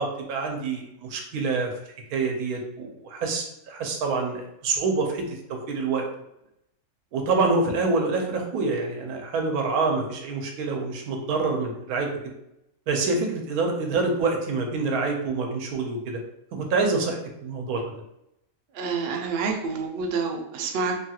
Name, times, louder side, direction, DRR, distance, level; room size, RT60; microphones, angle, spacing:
voice 1, 0.0-1.7 2.1-5.4 5.7-6.1 7.1-12.1 12.9-16.2 16.5-17.8, right 3 dB, 85° right, 2 dB, 1.1 m, -26 dB
voice 2, 18.7-21.0, right 4 dB, 65° right, 2 dB, 0.6 m, -28 dB
3.1 x 2.3 x 2.8 m, 0.83 s
omnidirectional pair, 1.5 m